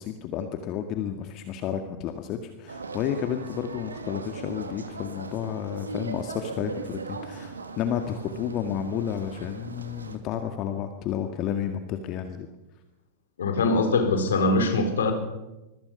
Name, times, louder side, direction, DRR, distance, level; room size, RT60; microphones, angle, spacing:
voice 1, 0.0-12.5, left 9 dB, 35° left, 7 dB, 1.9 m, -31 dB
sound 1, 2.7-10.2, right 4 dB, 75° right, 2.3 m, -39 dB
voice 2, 13.4-15.1, left 3 dB, 65° left, 6 dB, 4.4 m, -22 dB
26.0 x 22.5 x 5.6 m, 1.0 s
figure-of-eight pair, 90°, 0 cm